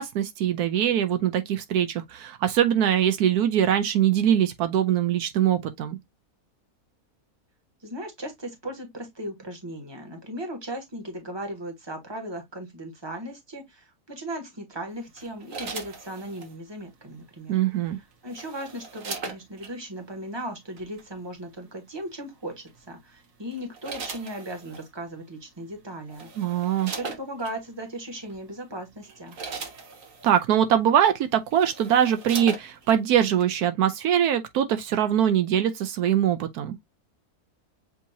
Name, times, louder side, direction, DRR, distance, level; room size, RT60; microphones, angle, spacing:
voice 1, 0.0-6.0 17.5-18.0 26.4-26.9 30.2-36.8, right 10 dB, 80° right, 1.1 m, -22 dB
voice 2, 7.8-17.6 18.2-29.4, right 1 dB, 15° right, 1.4 m, -37 dB
sound 1, 15.2-16.5 17.9-19.7 20.8-21.0 22.7-23.0 23.5-24.9 25.7-25.8 26.1-27.6 28.3-28.5 28.9-30.4 31.1-31.2 31.5-33.0 33.4-33.5, right 4 dB, 60° right, 1.5 m, -39 dB
7.2 x 2.8 x 2.6 m
omnidirectional pair, 1.6 m